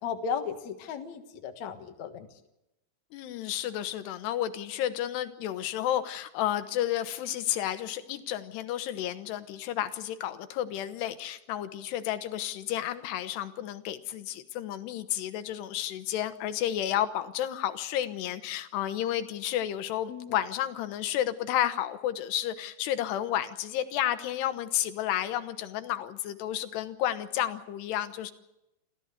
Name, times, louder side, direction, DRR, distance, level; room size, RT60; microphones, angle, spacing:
voice 1, 0.0-2.3 20.1-20.3, left 6 dB, 60° left, 5 dB, 2.1 m, -35 dB
voice 2, 3.1-28.3, left 12 dB, 80° left, 10 dB, 3.1 m, -31 dB
28.0 x 14.5 x 8.2 m, 0.92 s
omnidirectional pair, 4.9 m